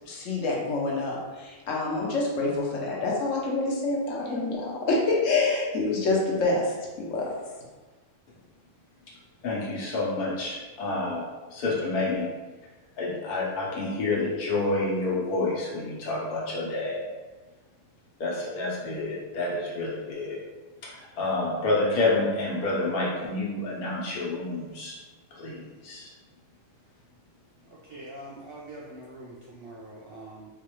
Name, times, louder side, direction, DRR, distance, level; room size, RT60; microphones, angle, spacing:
voice 1, 0.1-7.3, left 3 dB, 65° left, -2 dB, 1.1 m, -27 dB
voice 2, 9.4-11.3 11.5-12.3 13.0-17.0 18.2-20.4 20.8-25.0 25.3-26.1, left 2 dB, 85° left, -4 dB, 1.4 m, -28 dB
voice 3, 27.7-30.5, right 1 dB, 55° right, -5 dB, 0.7 m, -44 dB
3.9 x 2.5 x 3.0 m, 1.2 s
omnidirectional pair, 1.5 m